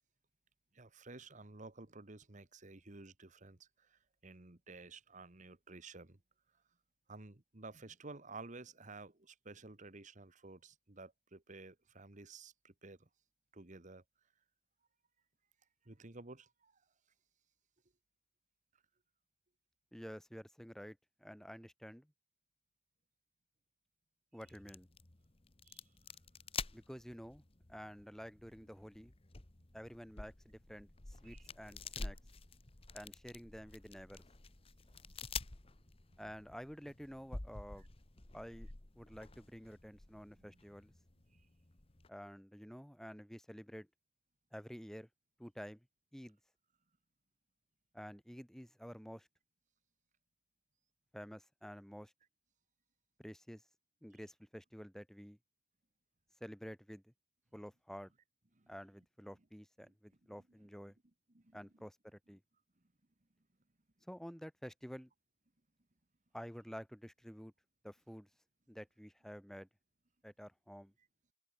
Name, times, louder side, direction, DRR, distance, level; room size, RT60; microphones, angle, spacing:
voice 1, 0.7-6.2 7.1-13.1 13.5-14.0 15.8-16.8 25.6-25.8 29.6-29.7 31.2-31.4 35.0-35.1 40.3-40.5 41.3-41.4 58.5-58.7 61.3-61.6, right 3 dB, 35° right, 1.4 m, -53 dB
voice 2, 19.9-22.1 24.3-24.9 26.7-27.4 27.7-29.1 29.7-32.2 32.9-34.2 36.2-37.9 38.3-38.7 38.9-40.9 42.1-43.9 44.5-45.1 45.4-45.9 46.1-46.4 47.9-49.3 51.1-52.1 53.2-53.6 54.0-55.4 56.4-57.1 57.5-58.1 58.7-61.0 61.5-62.4 64.1-65.1 66.3-67.5 67.8-68.3 68.7-69.7 70.2-70.9, equal, ahead, 2.0 m, -50 dB
sound 1, 24.4-42.1, left 4 dB, 30° left, 1.2 m, -49 dB
open air
head